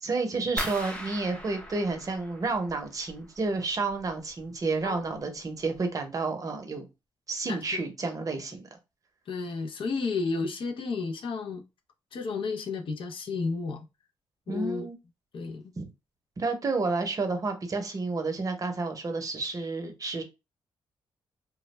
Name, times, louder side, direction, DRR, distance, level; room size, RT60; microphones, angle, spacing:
voice 1, 0.0-6.9 7.3-8.7 14.5-14.9 15.8-15.9 16.4-20.2, right 3 dB, 35° right, 0.7 m, -30 dB
sound 1, 0.6-3.4 3.7-4.4 4.8-5.2 5.6-5.8, equal, 10° left, 0.6 m, -39 dB
voice 2, 7.5-7.8 9.3-11.6 12.1-13.9 14.5-14.9 15.3-15.7, left 4 dB, 60° left, 0.5 m, -32 dB
2.2 x 2.1 x 3.1 m
cardioid pair, 100°, 10 cm